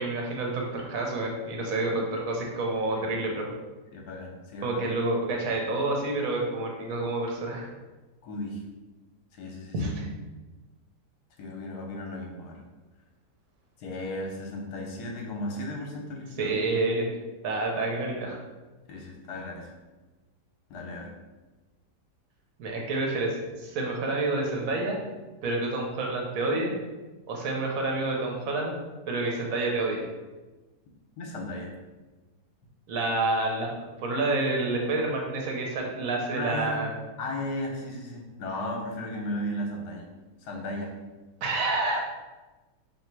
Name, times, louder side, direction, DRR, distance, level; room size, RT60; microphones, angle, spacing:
voice 1, 0.0-3.5 4.6-7.7 9.7-9.9 16.4-17.1 17.4-18.4 22.6-25.0 25.4-26.7 27.3-28.7 29.1-30.0 32.9-37.0 41.4-42.0, right 2 dB, 60° right, 0 dB, 1.1 m, -28 dB
voice 2, 3.9-4.8 8.2-8.6 9.4-9.9 11.4-12.6 13.8-16.6 18.9-19.7 20.7-21.1 31.2-31.7 36.3-36.9 37.2-40.1 40.4-40.9, left 1 dB, 75° left, 0 dB, 1.3 m, -35 dB
2.9 x 2.9 x 4.5 m, 1.2 s
omnidirectional pair, 1.8 m